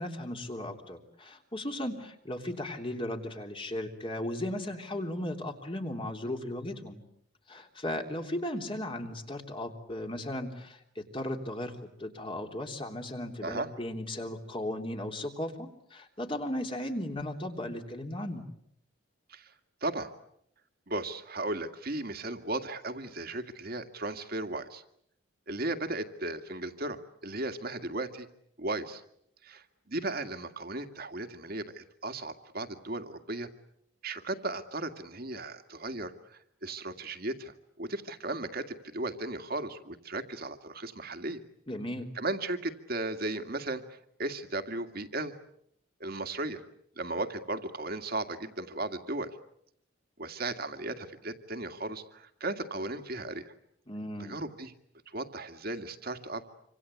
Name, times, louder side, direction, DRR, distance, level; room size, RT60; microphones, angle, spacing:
voice 1, 0.0-7.0 7.5-18.4 41.7-42.1 53.9-54.4, left 1 dB, 25° left, 4 dB, 3.2 m, -36 dB
voice 2, 20.9-24.8 25.5-28.3 28.6-29.0 29.4-33.5 34.0-41.4 42.2-45.3 46.0-46.6 47.0-49.3 50.2-53.5 54.2-54.7 55.1-56.6, right 2 dB, 45° right, 7 dB, 2.2 m, -36 dB
27.0 x 26.5 x 8.4 m, 0.72 s
head